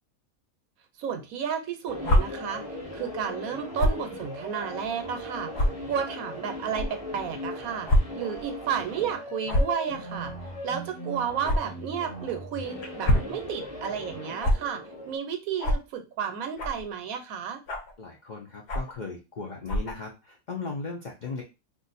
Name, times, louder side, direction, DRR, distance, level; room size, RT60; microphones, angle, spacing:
voice 1, 1.0-2.6 2.9-7.9 8.2-10.3 10.6-17.6, right 8 dB, 75° right, 7 dB, 1.0 m, -32 dB
sound 1, 1.9-15.2, left 1 dB, 30° left, 0.9 m, -38 dB
sound 2, 2.0-2.2 3.8-4.0 4.7-4.8 5.5-5.7 6.7-6.9 7.9-8.0 8.3-8.5 9.4-9.8 11.4-11.6 12.8-13.3 14.4-14.5 15.6-15.8 16.6-16.8 17.7-17.9 18.7-19.0 19.6-19.9, left 1 dB, 55° left, 0.9 m, -23 dB
voice 2, 18.0-21.4, left 4 dB, 85° left, 0 dB, 0.4 m, -37 dB
2.5 x 2.4 x 3.9 m, 0.28 s
omnidirectional pair, 1.5 m